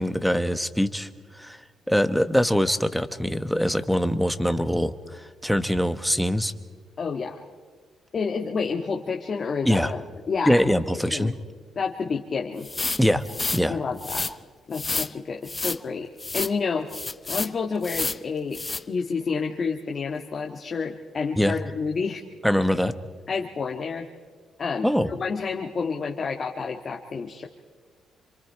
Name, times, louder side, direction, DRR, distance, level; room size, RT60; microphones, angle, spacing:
voice 1, 0.0-1.6 1.9-6.5 9.6-9.9 10.5-11.3 13.0-13.2 13.5-13.8 21.4-21.6 22.4-22.9 24.8-25.1, equal, ahead, 10 dB, 1.1 m, -23 dB
voice 2, 7.0-7.4 8.1-10.0 10.3-10.8 11.1-11.3 11.7-12.7 13.7-14.3 14.7-16.1 16.3-16.9 17.3-18.6 18.9-22.2 23.3-24.1 24.6-27.5, left 5 dB, 45° left, 1 dB, 1.6 m, -29 dB
sound 1, 12.6-13.6 14.0-14.3 14.7-15.1 15.5-15.8 16.2-16.5 16.9-17.5 17.8-18.2 18.5-18.8, left 3 dB, 25° left, 0.7 m, -29 dB
27.5 x 25.5 x 4.6 m, 1.5 s
cardioid pair, 90°, 0 cm